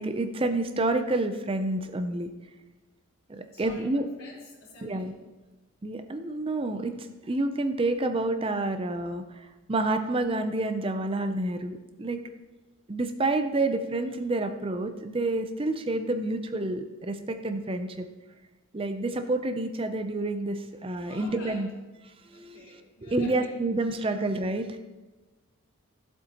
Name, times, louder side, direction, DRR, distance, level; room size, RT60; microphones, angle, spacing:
voice 1, 0.0-2.3 3.3-4.1 4.8-5.1 5.8-12.2 12.9-18.1 18.7-21.7 22.3-24.8, right 2 dB, 25° right, 8 dB, 0.5 m, -29 dB
voice 2, 3.5-5.1 21.0-21.7 22.3-23.5 23.9-24.2, left 2 dB, 90° left, -5 dB, 3.8 m, -48 dB
14.5 x 8.0 x 2.9 m, 1.1 s
head